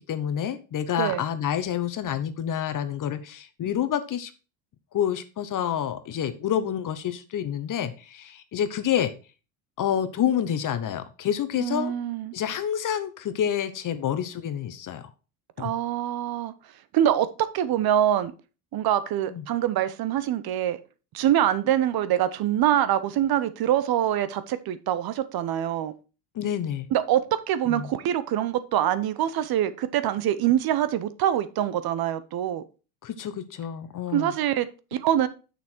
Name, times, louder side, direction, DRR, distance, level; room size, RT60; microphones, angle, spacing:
voice 1, 0.1-4.3 4.9-9.1 9.8-11.9 12.3-15.1 15.6-15.7 19.3-19.4 26.3-26.9 27.7-27.9 33.0-34.3, left 9 dB, 40° left, 12 dB, 1.1 m, -28 dB
voice 2, 11.6-12.3 15.6-16.5 16.9-18.3 18.7-20.8 21.1-25.9 26.9-32.6 34.1-35.3, right 11 dB, 45° right, 14 dB, 0.8 m, -24 dB
6.9 x 6.2 x 4.4 m, 0.33 s
supercardioid pair, 90°, 50 cm